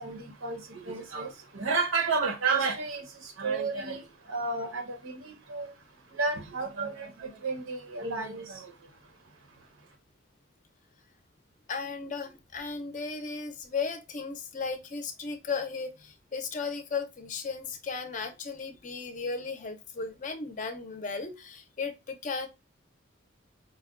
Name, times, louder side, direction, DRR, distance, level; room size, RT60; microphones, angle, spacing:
voice 1, 0.0-5.7 6.1-8.7, right 4 dB, 85° right, 0.8 m, -32 dB
voice 2, 11.7-22.5, left 4 dB, 40° left, 0.5 m, -35 dB
4.9 x 2.2 x 2.3 m
head